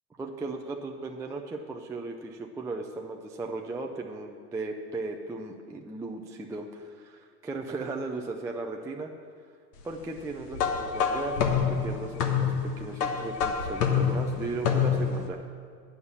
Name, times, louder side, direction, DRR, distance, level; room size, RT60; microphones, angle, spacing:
voice 1, 0.2-2.3 2.6-9.1 9.8-15.4, right 3 dB, 5° right, 2 dB, 0.4 m, -36 dB
sound 1, 10.5-15.3, left 6 dB, 70° left, 1.2 m, -27 dB
9.3 x 5.7 x 7.2 m, 2.1 s
hypercardioid pair, 85°, 49 cm